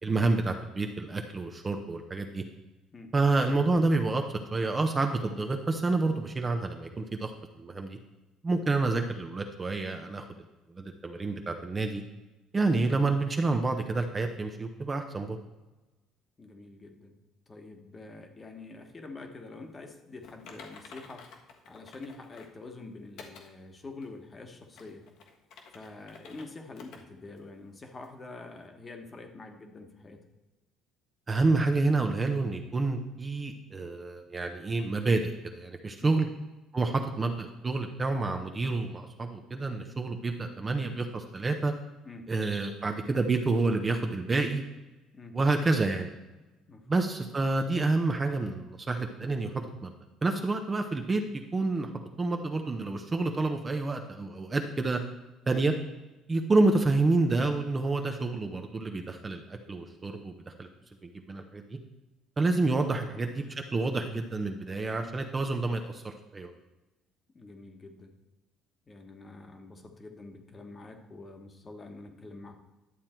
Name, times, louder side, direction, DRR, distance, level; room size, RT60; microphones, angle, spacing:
voice 1, 0.0-2.4 3.1-4.2 4.5-7.3 7.6-8.0 8.4-10.3 10.7-12.0 12.5-15.4 31.3-36.3 36.7-41.7 42.3-44.6 45.3-46.1 46.9-49.9 50.2-51.2 51.5-51.9 52.2-55.0 55.5-55.7 56.3-60.7 61.0-61.8 62.4-63.4 63.7-66.5, right 3 dB, 20° right, 5 dB, 0.7 m, -28 dB
voice 2, 16.4-17.2 17.5-21.3 21.7-25.1 25.7-30.2 36.0-36.1 42.0-42.3 45.1-45.4 46.7-47.0 55.5-55.6 62.9-63.0 64.9-65.1 67.3-68.1 68.9-72.6, left 3 dB, 20° left, 5 dB, 1.3 m, -46 dB
Typing, 20.2-22.6 23.2-23.5 24.0-24.1 24.6-26.5 26.8-27.0 27.4-27.5 28.0-28.1, left 5 dB, 65° left, 1.4 m, -50 dB
11.0 x 7.4 x 4.4 m, 1.1 s
cardioid pair, 135°, 0 cm